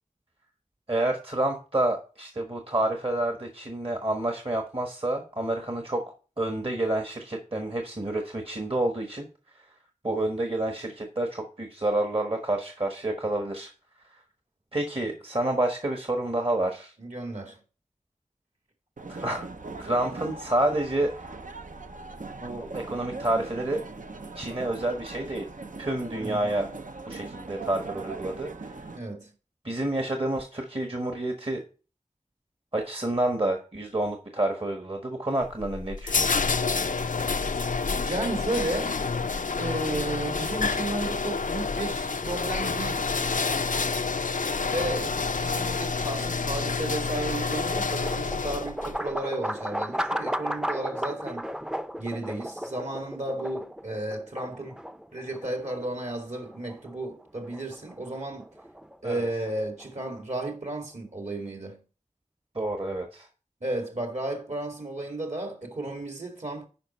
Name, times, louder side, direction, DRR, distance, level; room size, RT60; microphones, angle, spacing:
voice 1, 0.9-6.0 6.4-9.3 9.5-9.7 10.0-13.7 14.1-14.2 14.7-16.9 19.1-19.5 19.8-21.1 22.4-23.8 24.3-25.5 25.8-26.7 27.1-28.8 29.6-31.6 32.7-36.4 59.0-59.3 62.5-63.3, right 1 dB, 45° right, 1.3 m, -29 dB
voice 2, 17.0-17.6 26.1-26.5 28.9-29.3 38.1-39.0 39.6-43.2 44.7-51.5 52.0-54.8 55.1-58.5 59.0-61.8 63.6-66.7, right 2 dB, 60° right, 2.1 m, -33 dB
sound 1, 19.0-29.0, right 3 dB, 80° right, 0.7 m, -40 dB
sound 2, 35.4-49.0, left 4 dB, 80° left, 0.4 m, -28 dB
sound 3, 46.8-60.5, equal, 5° right, 0.5 m, -36 dB
10.5 x 5.1 x 4.3 m
wide cardioid pair, 45°, 13 cm